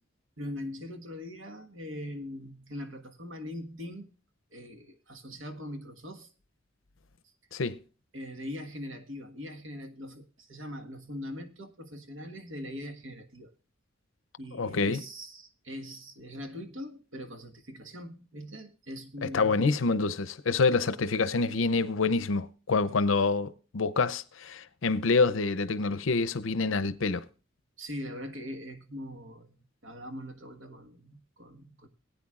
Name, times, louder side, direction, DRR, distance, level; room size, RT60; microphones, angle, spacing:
voice 1, 0.4-4.1 4.5-6.3 8.1-13.5 14.4-19.9 27.8-29.6 29.8-31.9, left 1 dB, 70° right, 1.5 m, -41 dB
voice 2, 14.6-15.0 19.2-27.2, left 4 dB, 80° left, 0.6 m, -27 dB
19.5 x 9.1 x 2.4 m
head